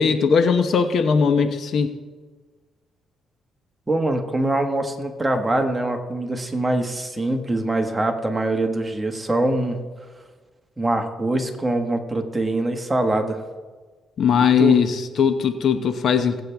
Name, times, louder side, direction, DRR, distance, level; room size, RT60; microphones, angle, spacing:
voice 1, 0.0-1.9 14.2-16.4, left 6 dB, 60° left, 9 dB, 1.0 m, -19 dB
voice 2, 3.9-9.8 10.8-13.4 14.6-14.8, right 2 dB, 15° right, 4 dB, 1.6 m, -23 dB
20.0 x 8.6 x 3.5 m, 1.4 s
cardioid pair, 90°, 0 cm